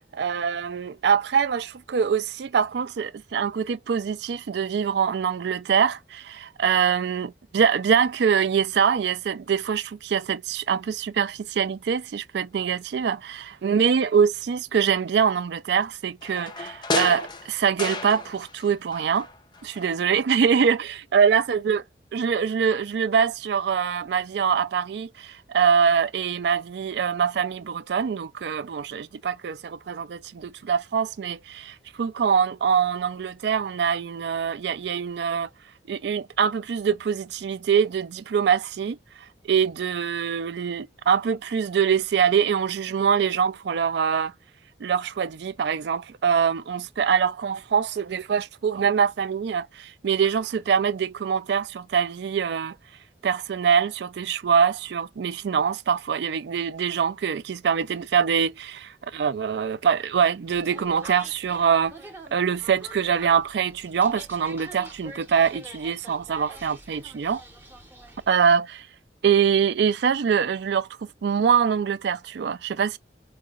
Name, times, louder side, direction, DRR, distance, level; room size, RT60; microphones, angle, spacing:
voice 1, 0.1-19.3 19.6-21.8 22.1-35.5 35.9-39.0 39.5-44.3 44.8-52.7 53.2-61.9 62.3-67.4 68.3-68.8 69.2-70.9 71.2-73.0, right 7 dB, 65° right, 0.3 m, -24 dB
sound 1, 16.2-18.7 18.9-20.0 20.3-20.4, left 3 dB, 25° left, 0.4 m, -32 dB
sound 2, 60.5-68.3, right 2 dB, 10° right, 0.7 m, -45 dB
4.8 x 2.1 x 2.3 m
head